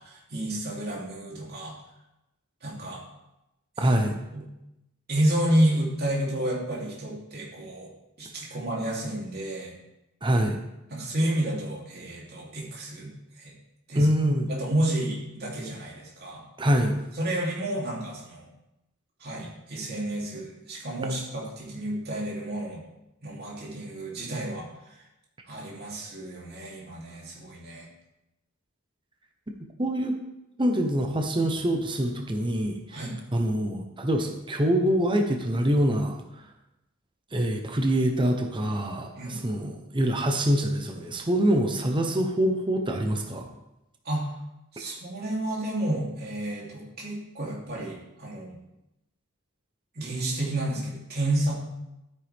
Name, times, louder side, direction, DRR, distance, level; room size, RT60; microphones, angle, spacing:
voice 1, 0.0-1.7 2.6-3.0 3.8-3.9 4.3-4.4 5.1-7.9 8.2-9.7 10.9-13.5 13.9-14.0 14.5-16.4 17.2-18.5 19.2-22.8 23.2-25.0 25.5-27.9 32.9-33.2 39.2-39.4 44.0-44.3 44.7-48.6 49.9-51.6, right 1 dB, 50° right, -4 dB, 3.3 m, -30 dB
voice 2, 3.8-4.2 10.2-10.6 13.9-14.5 16.6-16.9 29.8-30.2 30.6-33.0 33.3-36.2 37.3-43.5, equal, 25° right, 3 dB, 1.0 m, -25 dB
13.0 x 9.0 x 3.6 m, 0.91 s
head